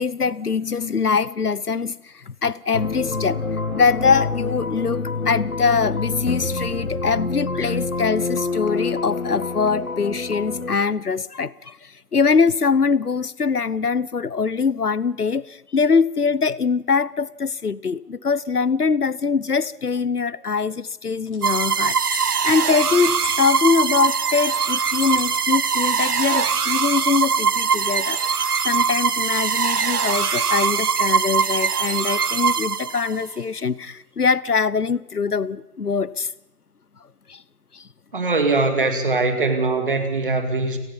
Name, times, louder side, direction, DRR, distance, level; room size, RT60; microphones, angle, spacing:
voice 1, 0.0-3.4 3.7-36.3 37.3-37.4 37.7-37.8, left 5 dB, 80° left, 21 dB, 1.0 m, -23 dB
sound 1, 2.7-10.8, left 3 dB, 65° left, 2.0 m, -27 dB
sound 2, 21.3-24.1 24.7-25.3 25.7-26.5, left 4 dB, 30° left, 6.4 m, -38 dB
sound 3, 21.4-33.3, right 6 dB, 80° right, 0.8 m, -22 dB
voice 2, 38.1-40.8, right 3 dB, 35° right, 7 dB, 2.6 m, -21 dB
30.0 x 18.5 x 5.6 m, 0.94 s
figure-of-eight pair, 165°, 45 cm